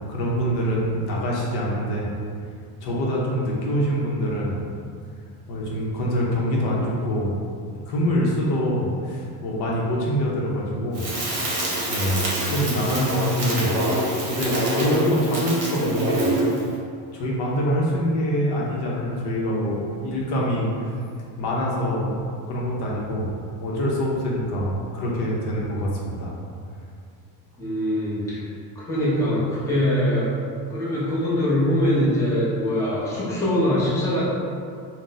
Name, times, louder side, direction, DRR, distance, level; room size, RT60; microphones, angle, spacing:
voice 1, 0.0-2.1 2.8-4.6 5.5-7.4 7.9-11.1 11.9-13.9 14.2-16.3 17.1-20.9 21.4-22.2 22.5-26.3, equal, 60° left, -4 dB, 0.7 m, -25 dB
Crackle, 10.9-16.6, right 1 dB, 35° right, 0.8 m, -25 dB
voice 2, 27.6-28.4 28.8-30.3 30.7-34.3, left 1 dB, 5° left, -10 dB, 0.6 m, -23 dB
2.5 x 2.0 x 3.8 m, 2.3 s
cardioid pair, 140°, 45 cm